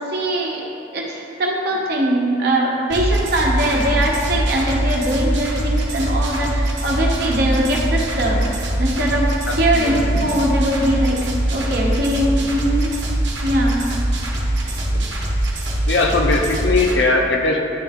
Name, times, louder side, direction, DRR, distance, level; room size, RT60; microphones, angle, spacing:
voice 1, 0.1-0.6 0.9-8.4 8.8-12.9 13.4-13.8, right 1 dB, 55° right, -2 dB, 1.0 m, -21 dB
sound 1, 2.9-16.9, right 1 dB, 75° right, 1.0 m, -22 dB
voice 2, 9.5-10.2 14.6-15.0 15.9-17.6, left 3 dB, 75° left, 1 dB, 0.7 m, -20 dB
9.9 x 3.4 x 3.6 m, 2.8 s
head